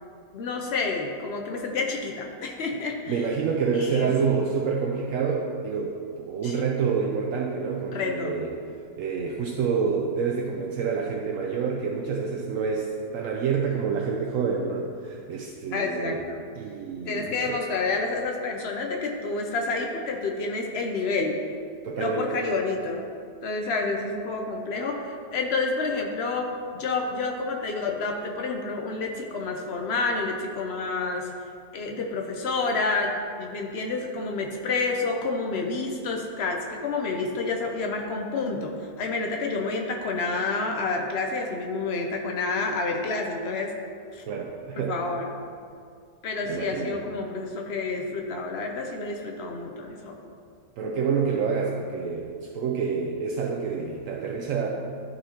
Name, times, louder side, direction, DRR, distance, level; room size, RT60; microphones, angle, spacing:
voice 1, 0.3-3.2 3.7-4.4 6.4-6.6 7.9-8.4 15.7-16.4 17.1-21.4 22.0-23.0 23.4-31.3 31.7-43.7 44.1-44.2 44.8-45.3 46.2-50.1, left 3 dB, 90° left, 2 dB, 0.5 m, -29 dB
voice 2, 3.1-8.5 9.0-16.2 16.6-17.6 21.8-22.3 44.3-45.0 46.5-47.0 50.8-54.7, right 5 dB, 70° right, -1 dB, 0.8 m, -28 dB
12.5 x 4.2 x 2.8 m, 2.3 s
omnidirectional pair, 1.8 m